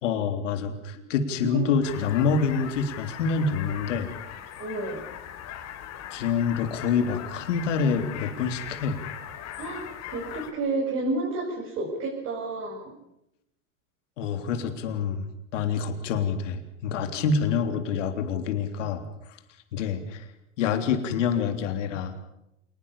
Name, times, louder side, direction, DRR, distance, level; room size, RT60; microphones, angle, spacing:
voice 1, 0.0-4.1 6.1-9.0 14.2-15.3 15.5-19.4 19.7-20.3 20.6-22.2, left 6 dB, 80° left, 7 dB, 3.5 m, -27 dB
sound 1, 1.8-10.5, left 10 dB, 45° left, 4.1 m, -40 dB
voice 2, 4.6-5.0 9.6-9.9 10.1-13.0 17.1-17.2, right 2 dB, 40° right, -1 dB, 7.3 m, -30 dB
27.5 x 20.5 x 7.2 m, 0.83 s
supercardioid pair, 115°, 36 cm